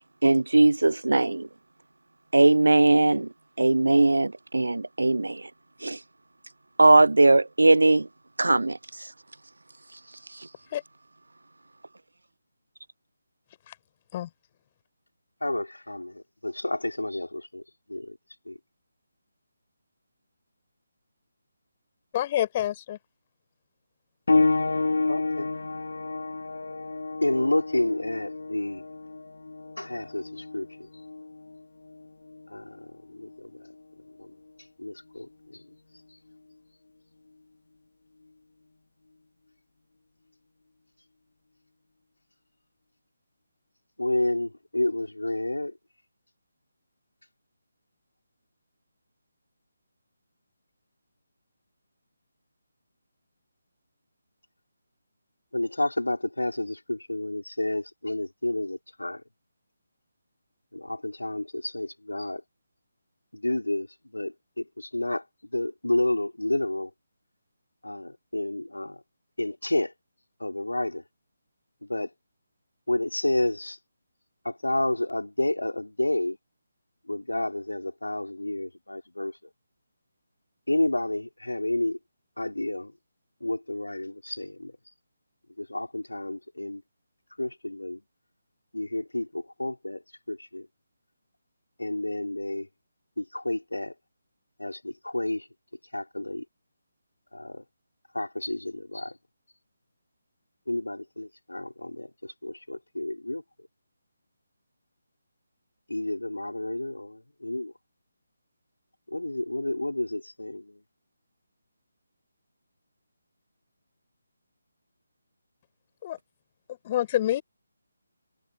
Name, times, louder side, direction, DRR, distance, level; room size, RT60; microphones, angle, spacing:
voice 1, 0.2-1.5 2.3-3.3 3.6-5.4 5.8-6.0 6.8-8.1 8.4-8.8, right 2 dB, 70° right, 0.4 m, -19 dB
voice 2, 15.4-17.6 17.9-18.2 18.5-18.6 25.1-25.5 27.2-28.8 29.8-30.9 32.5-33.7 34.2-34.3 34.8-35.6 44.0-45.7 55.5-59.2 60.7-62.4 63.3-63.9 64.1-65.2 65.5-66.9 67.8-69.0 69.4-69.9 70.4-71.0 71.8-72.1 72.9-73.8 74.5-76.4 77.1-79.3 80.7-82.0 82.4-82.9 83.4-84.7 85.6-86.8 87.4-88.0 88.7-90.0 90.3-90.7 91.8-92.7 93.2-93.9 94.6-95.5 95.9-96.4 97.3-97.6 98.1-99.2 100.7-103.4 105.9-107.7 109.1-110.8, left 1 dB, 80° left, 5.1 m, -30 dB
voice 3, 22.1-23.0 116.0-116.2 116.7-117.4, left 12 dB, 25° left, 6.4 m, -27 dB
sound 1, 24.3-34.5 35.4-35.6 36.3-36.4, left 3 dB, 65° left, 2.5 m, -30 dB
figure-of-eight pair, 150°, 0 cm